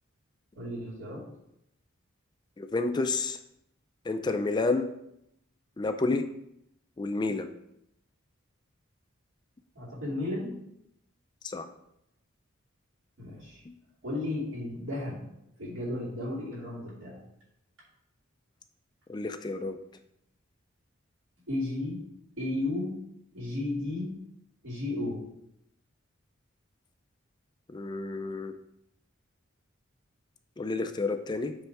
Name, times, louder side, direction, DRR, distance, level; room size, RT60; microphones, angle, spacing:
voice 1, 0.5-1.3 9.8-10.6 13.2-13.6 14.0-15.3 15.6-17.2 21.5-22.0 22.4-23.0 23.3-24.2 24.6-25.3, left 2 dB, 70° right, -5 dB, 2.5 m, -34 dB
voice 2, 2.6-3.4 4.1-4.9 5.8-6.3 7.0-7.5 11.4-11.7 13.7-13.8 19.1-19.8 27.7-28.5 30.6-31.6, left 3 dB, 20° left, 8 dB, 0.3 m, -30 dB
7.8 x 3.4 x 4.6 m, 0.79 s
head